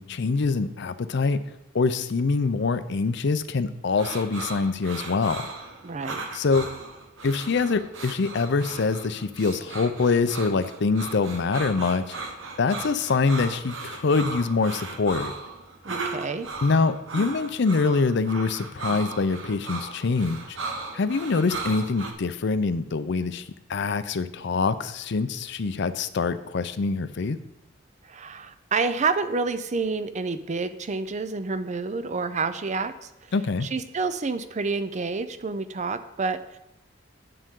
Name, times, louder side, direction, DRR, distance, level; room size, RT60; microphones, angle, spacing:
voice 1, 0.0-1.4 1.7-5.5 6.3-6.7 7.2-12.1 12.6-15.3 16.6-20.6 20.9-23.4 23.7-27.4 33.3-33.7, left 4 dB, 65° left, 12 dB, 0.5 m, -24 dB
sound 1, 4.0-22.1, right 3 dB, 90° right, 1.2 m, -36 dB
voice 2, 5.8-6.2 15.8-16.5 28.0-33.1 33.6-36.6, right 4 dB, 40° right, 12 dB, 0.5 m, -28 dB
10.0 x 7.6 x 3.7 m, 0.89 s
head